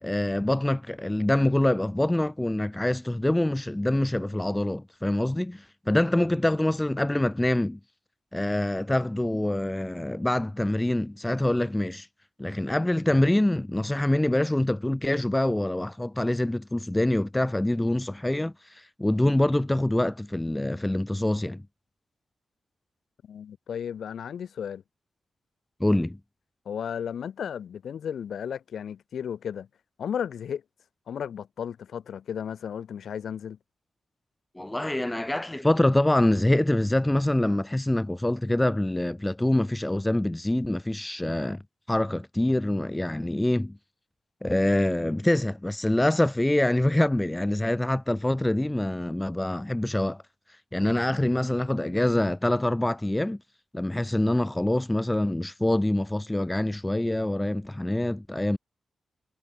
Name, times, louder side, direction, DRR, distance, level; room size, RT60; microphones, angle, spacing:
voice 1, 0.0-7.8 8.3-12.1 12.4-21.6 25.8-26.2 34.6-41.6 41.9-43.8 44.4-50.2 50.7-53.4 53.7-58.6, left 1 dB, 10° left, 0.8 m, -25 dB
voice 2, 23.2-24.8 26.6-29.7 30.0-30.6 31.1-33.6, left 8 dB, 75° left, 2.8 m, -34 dB
wide cardioid pair, 140°, 0 cm